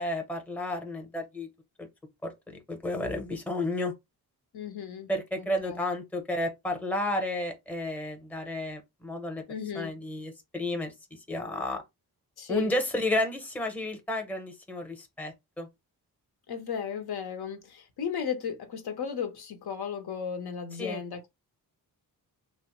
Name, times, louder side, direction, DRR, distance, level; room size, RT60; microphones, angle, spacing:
voice 1, 0.0-1.5 2.2-3.9 5.1-9.4 9.7-10.9 11.3-11.8 12.5-15.7 20.8-21.0, left 1 dB, 5° left, 0.6 m, -32 dB
voice 2, 4.5-5.1 5.4-5.8 9.5-9.9 12.4-12.8 16.5-21.3, left 7 dB, 80° left, 0.7 m, -35 dB
3.0 x 2.0 x 2.9 m
wide cardioid pair, 130°, 38 cm